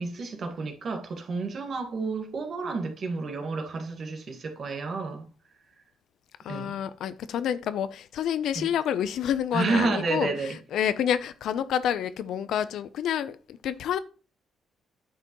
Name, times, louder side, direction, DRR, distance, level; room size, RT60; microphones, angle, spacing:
voice 1, 0.0-5.3 6.5-6.7 8.6-8.7 9.5-10.6, right 4 dB, 50° right, 1.8 m, -30 dB
voice 2, 6.4-10.3 10.7-14.0, left 9 dB, 75° left, 0.6 m, -28 dB
9.5 x 5.8 x 3.1 m
cardioid pair, 90°, 0 cm